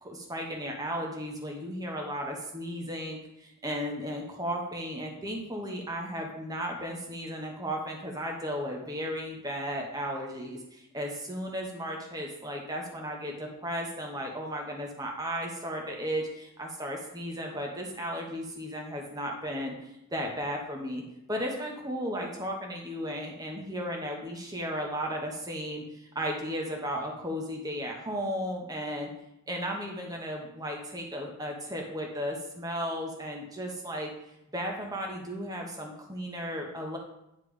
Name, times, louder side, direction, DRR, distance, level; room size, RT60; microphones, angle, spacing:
voice 1, 0.0-19.7 20.1-21.0 21.3-29.1 29.5-34.1 34.5-37.0, equal, 15° right, 0 dB, 1.0 m, -35 dB
9.6 x 3.3 x 4.9 m, 0.87 s
head